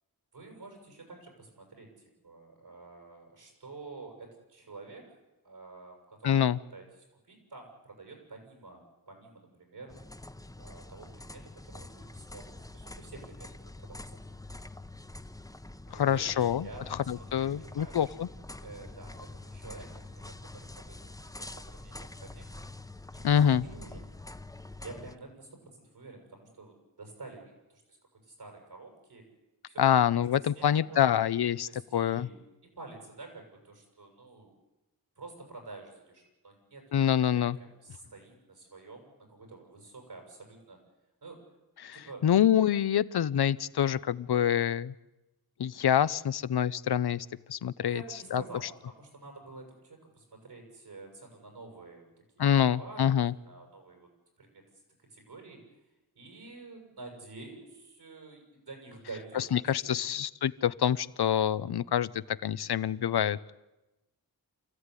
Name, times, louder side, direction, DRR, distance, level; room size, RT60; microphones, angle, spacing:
voice 1, 0.3-1.9 2.2-5.1 5.4-6.8 7.2-9.9 10.6-13.5 13.8-14.2 15.9-18.1 18.6-21.0 21.4-22.5 23.1-24.0 24.8-29.2 29.7-31.1 31.7-32.4 32.8-34.5 35.2-40.8 41.2-41.4 41.9-42.2 47.8-52.1 52.4-53.2 53.4-54.1 54.4-54.6 55.0-55.6 56.1-60.0, right 3 dB, 75° right, 2 dB, 7.6 m, -49 dB
voice 2, 6.2-6.6 15.9-18.3 23.2-23.6 29.8-32.3 36.9-37.6 41.8-42.0 42.2-44.9 45.6-48.0 48.3-48.4 52.4-53.3 59.3-63.5, left 9 dB, 85° left, 16 dB, 0.7 m, -26 dB
sound 1, 9.9-25.2, left 2 dB, 10° left, 0.9 m, -46 dB
27.5 x 15.0 x 9.8 m, 1.0 s
wide cardioid pair, 100°, 38 cm